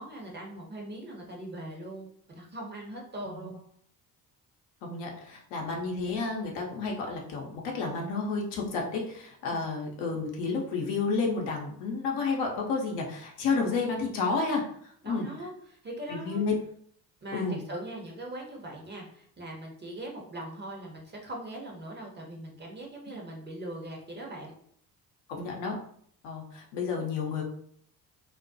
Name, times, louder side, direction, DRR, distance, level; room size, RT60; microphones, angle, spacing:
voice 1, 0.0-2.1 2.4-3.6 9.5-9.6 14.6-14.7 15.0-16.4 17.2-24.5, right 1 dB, 20° right, -1 dB, 0.7 m, -41 dB
voice 2, 4.8-14.6 15.0-15.3 16.1-16.5 17.3-17.6 25.3-25.8 26.2-27.4, left 4 dB, 55° left, 0 dB, 0.7 m, -31 dB
2.3 x 2.1 x 2.6 m, 0.63 s
figure-of-eight pair, 50°, 49 cm